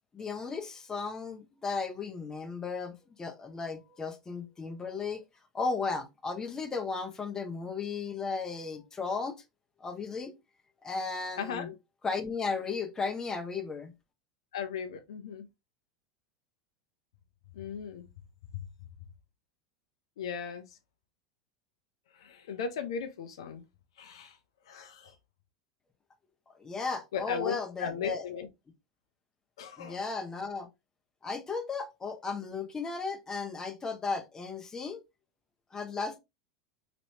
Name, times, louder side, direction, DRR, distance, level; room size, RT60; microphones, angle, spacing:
voice 1, 0.1-5.2 5.5-9.4 9.8-10.3 10.8-11.7 12.0-13.9 26.5-28.3 29.8-30.7 31.2-35.0 35.7-36.2, left 4 dB, 20° left, 0.8 m, -35 dB
voice 2, 11.4-11.8 14.5-15.5 17.5-18.1 18.5-18.7 20.2-20.8 22.1-23.6 24.0-24.4 24.7-25.1 27.1-28.5 29.6-30.0, left 7 dB, 75° left, 0.6 m, -37 dB
3.1 x 3.0 x 2.7 m
hypercardioid pair, 90°, 3 cm